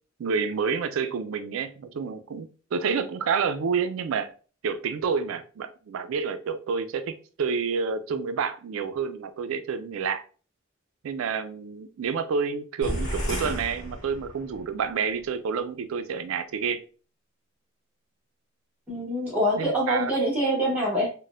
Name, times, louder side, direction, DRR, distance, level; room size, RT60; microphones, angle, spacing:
voice 1, 0.2-4.3 4.6-10.2 11.0-16.8 19.6-20.1, right 5 dB, 75° right, 0.4 m, -29 dB
sound 1, 12.8-14.7, equal, 40° left, 1.2 m, -32 dB
voice 2, 18.9-21.1, equal, 10° right, 1.0 m, -25 dB
4.0 x 2.1 x 2.4 m
head